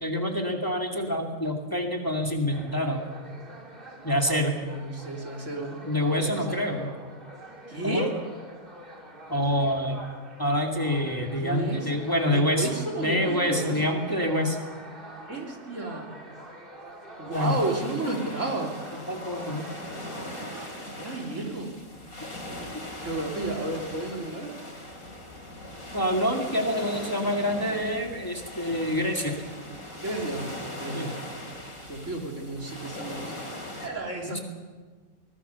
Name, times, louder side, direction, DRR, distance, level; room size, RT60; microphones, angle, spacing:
voice 1, 0.0-3.0 4.0-4.5 5.8-6.9 7.8-8.1 9.3-10.0 10.4-12.7 13.0-14.6 17.3-17.6 19.1-19.6 25.9-29.3 30.9-31.1 34.2-34.4, equal, 15° left, 1 dB, 2.4 m, -26 dB
sound 1, 2.5-20.9, right 1 dB, 40° right, 3.0 m, -45 dB
voice 2, 4.6-6.6 7.7-8.2 11.4-11.8 12.3-14.0 15.2-16.1 17.2-18.8 20.8-21.7 23.0-24.5 30.0-31.1 31.9-33.4 33.8-34.4, right 2 dB, 65° right, 0 dB, 3.7 m, -32 dB
sound 2, 17.3-33.9, left 1 dB, 85° left, 5.0 m, -40 dB
23.5 x 20.5 x 7.0 m, 1.4 s
omnidirectional pair, 1.4 m